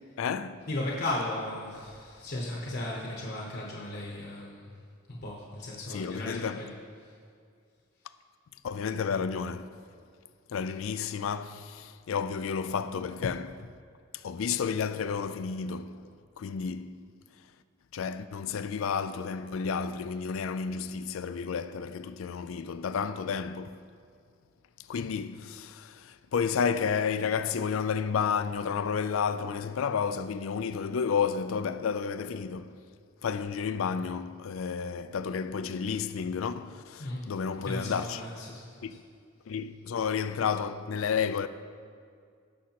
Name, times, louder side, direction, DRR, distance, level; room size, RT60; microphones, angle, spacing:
voice 1, 0.0-0.7 5.9-6.6 8.6-9.8 10.5-13.7 14.1-17.0 17.9-23.8 24.9-32.8 33.2-38.2 38.8-39.0 39.5-41.5, left 6 dB, 90° left, 0.4 m, -31 dB
voice 2, 0.7-4.7 5.1-6.7 7.0-7.1 37.0-37.3 37.6-38.7, left 1 dB, 50° left, 0.9 m, -35 dB
16.0 x 6.2 x 2.9 m
head